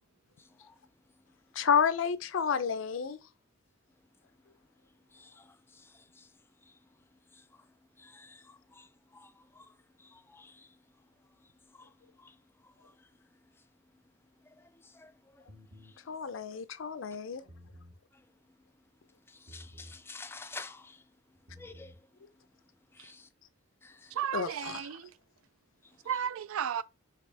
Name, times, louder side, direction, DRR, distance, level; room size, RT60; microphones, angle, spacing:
voice 1, 0.4-0.8 1.1-1.6 5.1-14.0 14.4-16.0 18.1-18.9 19.3-22.3 22.9-23.3 23.8-24.2 25.8-26.0, left 3 dB, 10° left, 0.3 m, -53 dB
voice 2, 1.6-3.2 16.1-17.4 24.3-24.8, left 7 dB, 65° left, 0.5 m, -30 dB
sound 1, 15.5-16.0 17.3-18.0 19.5-20.0 21.3-22.0, equal, 70° right, 1.6 m, -52 dB
voice 3, 24.1-25.1 26.0-26.8, right 9 dB, 90° right, 0.3 m, -34 dB
4.9 x 2.9 x 3.3 m
head